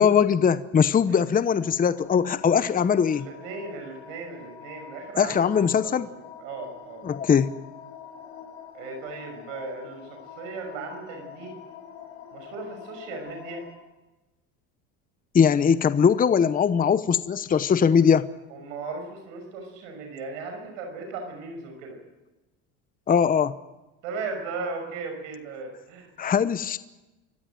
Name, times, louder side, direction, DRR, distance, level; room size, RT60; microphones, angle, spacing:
voice 1, 0.0-3.3 5.2-6.1 7.0-7.5 15.3-18.3 23.1-23.5 26.2-26.8, left 7 dB, 25° left, 14 dB, 0.8 m, -21 dB
sound 1, 1.9-13.7, left 7 dB, 90° left, 4.1 m, -45 dB
voice 2, 3.1-6.0 6.4-7.1 8.7-10.0 10.4-11.5 12.3-13.6 18.5-22.0 24.0-26.1, right 4 dB, 85° right, 4 dB, 5.7 m, -37 dB
26.0 x 15.0 x 9.0 m, 1.1 s
supercardioid pair, 95°, 37 cm